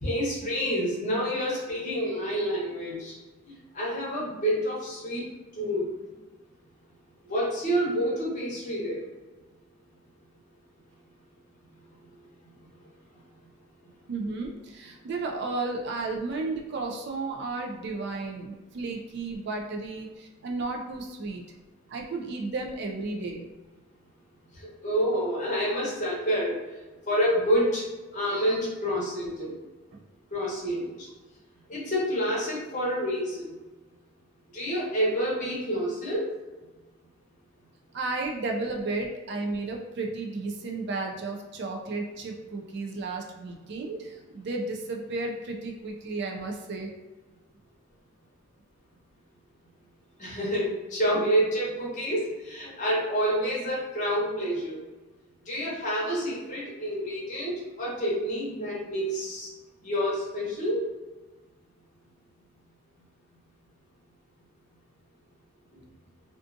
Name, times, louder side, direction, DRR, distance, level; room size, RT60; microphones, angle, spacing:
voice 1, 0.0-3.2 3.7-5.2 5.6-5.9 7.2-9.0 24.5-26.6 27.1-27.8 28.1-29.6 30.3-31.1 31.7-33.5 34.5-36.3 50.2-54.8 55.5-59.5 59.8-60.9, equal, 35° left, -6 dB, 0.8 m, -28 dB
voice 2, 14.1-21.4 21.9-23.4 29.9-30.0 37.9-46.9, right 3 dB, 50° right, 1 dB, 0.3 m, -33 dB
2.4 x 2.4 x 2.5 m, 1.2 s
head